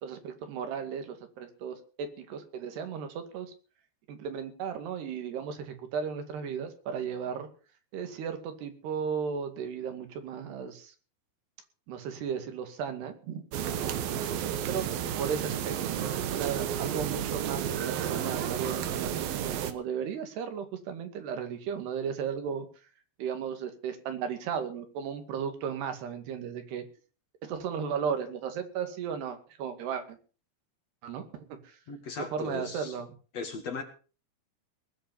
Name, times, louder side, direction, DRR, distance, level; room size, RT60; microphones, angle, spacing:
voice 1, 0.0-3.5 4.1-7.5 7.9-10.9 11.9-13.4 13.8-13.9 14.6-14.9 15.2-15.7 16.0-22.7 23.2-26.8 27.4-30.2 31.0-31.8 32.2-33.1, right 7 dB, 90° right, 8 dB, 4.3 m, -35 dB
sound 1, 13.5-19.7, right 9 dB, 70° right, 2.9 m, -32 dB
voice 2, 31.9-32.9 33.3-33.8, left 4 dB, 50° left, 6 dB, 2.7 m, -37 dB
20.0 x 8.2 x 7.0 m, 0.39 s
omnidirectional pair, 4.6 m